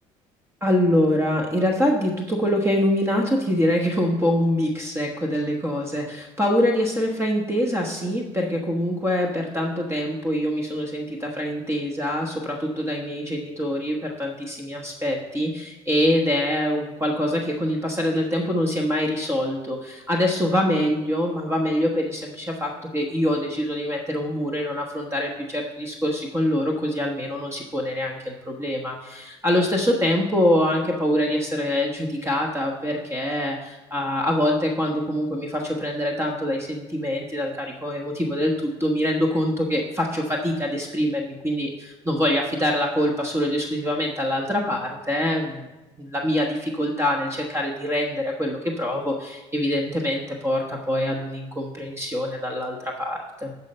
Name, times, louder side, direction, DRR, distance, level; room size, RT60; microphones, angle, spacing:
voice 1, 0.6-45.7 46.0-53.5, left 1 dB, 20° right, 1 dB, 1.2 m, -24 dB
10.5 x 4.4 x 5.5 m, 1.1 s
supercardioid pair, 75°, 14 cm